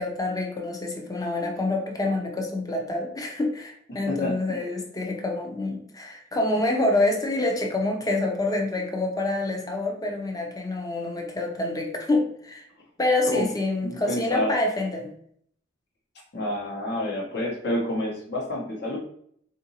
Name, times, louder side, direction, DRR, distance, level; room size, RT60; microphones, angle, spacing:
voice 1, 0.0-12.7 13.0-15.1, left 2 dB, 20° left, 2 dB, 0.5 m, -27 dB
voice 2, 4.1-4.6 13.3-13.5 13.8-14.5 16.3-19.0, left 1 dB, 60° left, -3 dB, 1.0 m, -28 dB
3.8 x 2.5 x 2.8 m, 0.66 s
head